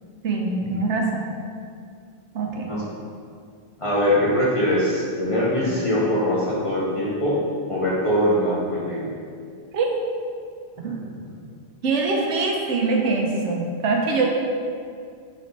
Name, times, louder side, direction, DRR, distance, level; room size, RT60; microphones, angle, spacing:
voice 1, 0.2-1.2 2.3-2.7 9.7-9.9 10.8-11.0 11.8-14.3, right 3 dB, 85° right, 0 dB, 1.0 m, -23 dB
voice 2, 2.5-2.8 3.8-7.4 7.7-9.0 10.8-11.0, left 1 dB, 35° left, -7 dB, 0.8 m, -22 dB
3.9 x 3.5 x 3.9 m, 2.2 s
omnidirectional pair, 1.2 m